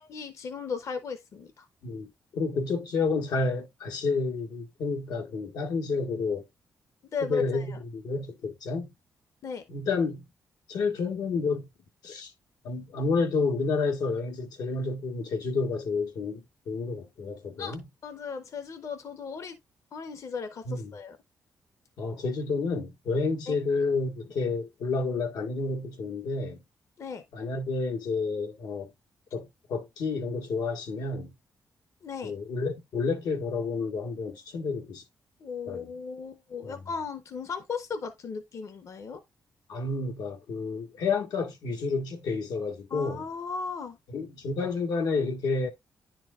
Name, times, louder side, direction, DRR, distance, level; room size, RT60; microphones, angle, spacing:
voice 1, 0.0-1.7 7.1-7.8 9.4-9.6 17.6-19.6 19.9-21.2 23.5-23.6 27.0-27.2 32.0-32.3 35.4-39.2 42.9-44.0, left 5 dB, 50° left, 0.7 m, -36 dB
voice 2, 1.8-6.4 7.2-8.9 9.7-10.2 10.7-11.7 12.0-12.3 12.6-17.8 20.6-20.9 22.0-26.6 27.3-28.9 29.3-31.3 32.2-35.0 35.7-35.8 36.7-36.8 39.7-43.2 44.1-45.7, left 4 dB, 85° left, 1.4 m, -30 dB
10.5 x 4.4 x 2.4 m
wide cardioid pair, 155°, 6 cm